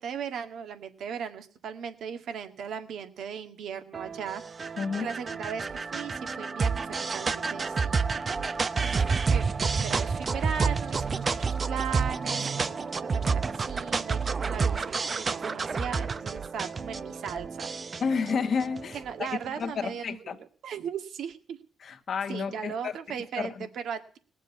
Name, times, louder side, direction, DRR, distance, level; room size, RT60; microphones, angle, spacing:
voice 1, 0.0-8.0 8.3-8.5 8.8-18.0 18.9-20.2 20.6-21.6 22.3-24.2, right 7 dB, 70° right, 1.8 m, -38 dB
sound 1, 3.9-19.5, right 5 dB, 35° right, 0.6 m, -29 dB
voice 2, 4.8-5.1 18.0-19.3 19.6-20.4 21.8-22.9 23.4-23.7, left 5 dB, 55° left, 1.2 m, -31 dB
19.5 x 7.4 x 8.4 m
cardioid pair, 90°, 0 cm